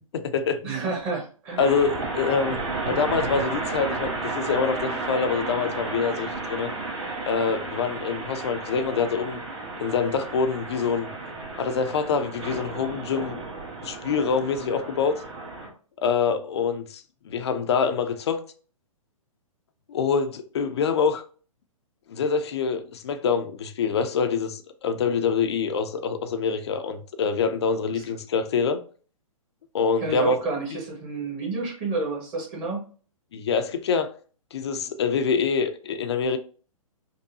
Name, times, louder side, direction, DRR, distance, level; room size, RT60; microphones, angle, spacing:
voice 1, 0.1-0.6 1.6-2.6 2.9-6.7 7.3-9.4 9.8-11.1 11.6-13.5 13.8-15.2 16.0-18.4 19.9-21.2 22.1-28.8 29.7-30.4 33.3-34.1 34.5-36.4, left 5 dB, 50° left, 0.5 m, -25 dB
voice 2, 0.6-1.6 27.9-28.0 30.0-32.8, right 3 dB, 30° right, 1.3 m, -30 dB
sound 1, 1.6-15.7, right 3 dB, 55° right, 1.4 m, -33 dB
5.4 x 2.2 x 2.6 m
figure-of-eight pair, 120°, 18 cm